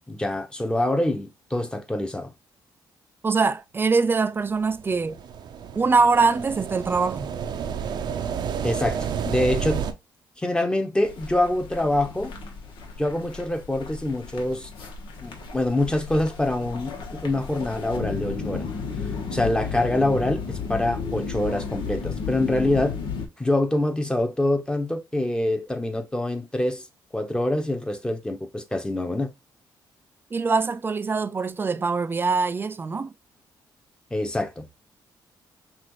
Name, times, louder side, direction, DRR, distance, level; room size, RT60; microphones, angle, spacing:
voice 1, 0.1-2.3 8.6-9.9 10.4-12.3 13.0-14.7 15.2-18.6 19.3-23.0 23.4-26.9 27.1-29.3 34.1-34.7, left 1 dB, 10° left, 1.0 m, -25 dB
voice 2, 3.2-5.2 5.8-7.3 30.3-33.1, right 4 dB, 30° right, 0.4 m, -23 dB
sound 1, 4.7-9.9, right 7 dB, 70° right, 0.6 m, -30 dB
sound 2, 11.0-23.3, left 5 dB, 80° left, 1.2 m, -33 dB
5.9 x 2.5 x 3.0 m
cardioid pair, 85°, 8 cm